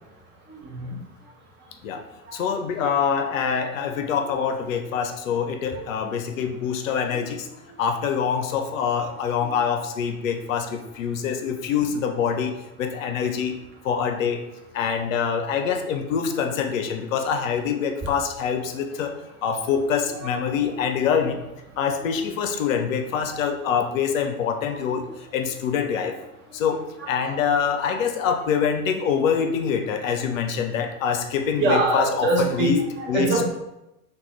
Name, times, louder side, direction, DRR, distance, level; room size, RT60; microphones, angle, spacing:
voice 1, 0.5-1.0 2.2-2.4 2.8-2.9 3.9-4.0 5.7-5.8 7.1-7.2 7.7-7.8 9.4-9.5 20.1-21.1 22.0-22.2 24.9-25.1 26.0-26.1 27.0-27.7 31.6-33.4, right 2 dB, 25° right, -1 dB, 0.8 m, -27 dB
voice 2, 2.3-7.4 7.8-12.5 12.8-13.5 13.9-14.4 14.7-19.1 19.4-21.4 21.8-25.0 25.3-26.1 26.5-26.8 27.1-33.3, left 7 dB, 65° left, 5 dB, 0.5 m, -25 dB
3.7 x 2.3 x 3.0 m, 0.92 s
figure-of-eight pair, 80°, 43 cm